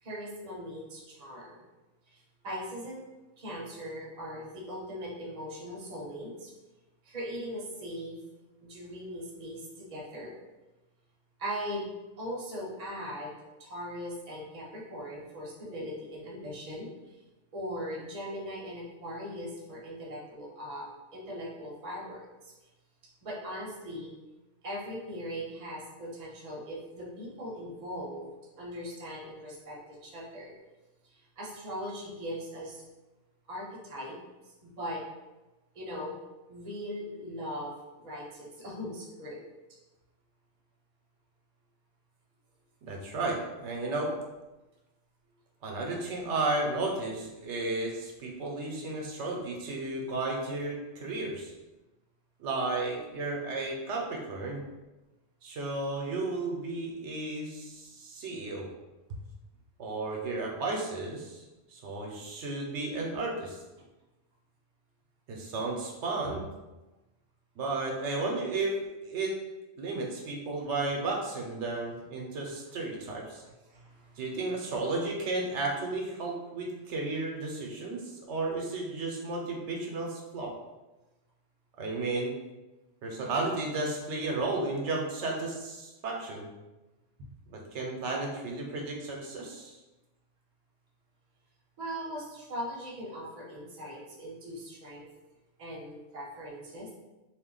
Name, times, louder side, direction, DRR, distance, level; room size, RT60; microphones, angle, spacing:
voice 1, 0.0-1.6 2.1-3.0 3.4-6.5 7.0-8.2 8.6-10.3 11.4-11.9 12.2-17.2 17.5-22.5 23.2-24.1 24.6-30.5 31.0-32.8 33.5-34.2 34.6-35.0 35.7-36.1 36.5-39.4 66.2-66.4 73.7-74.2 91.8-95.0 95.6-96.9, equal, 40° right, -3 dB, 0.7 m, -40 dB
voice 2, 42.8-44.1 45.6-51.5 52.4-54.6 55.4-58.7 59.1-59.2 59.8-61.4 61.7-63.6 65.3-66.4 67.6-69.3 69.8-73.4 74.2-80.5 81.8-82.3 83.0-86.5 87.5-89.8, right 2 dB, 80° right, -1 dB, 0.9 m, -33 dB
2.4 x 2.1 x 3.7 m, 1.1 s
omnidirectional pair, 1.2 m